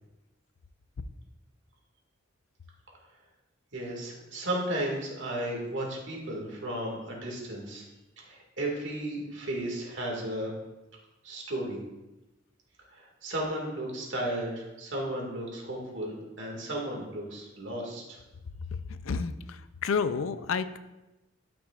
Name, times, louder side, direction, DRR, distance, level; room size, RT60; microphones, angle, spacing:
voice 1, 3.7-7.8 8.2-10.5 11.2-11.8 12.9-18.2, right 1 dB, 65° right, -1 dB, 2.0 m, -34 dB
voice 2, 18.7-20.8, left 5 dB, 85° left, 11 dB, 0.4 m, -31 dB
12.0 x 6.0 x 2.4 m, 1.0 s
head